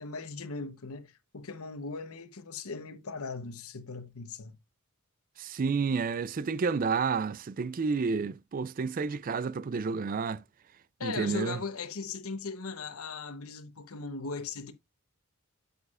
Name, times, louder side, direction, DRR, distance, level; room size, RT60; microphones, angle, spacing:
voice 1, 0.0-4.6 11.0-14.7, left 4 dB, 75° left, 1.0 m, -38 dB
voice 2, 5.4-10.4 11.0-11.6, right 5 dB, 40° right, 0.3 m, -30 dB
8.3 x 6.9 x 2.4 m
head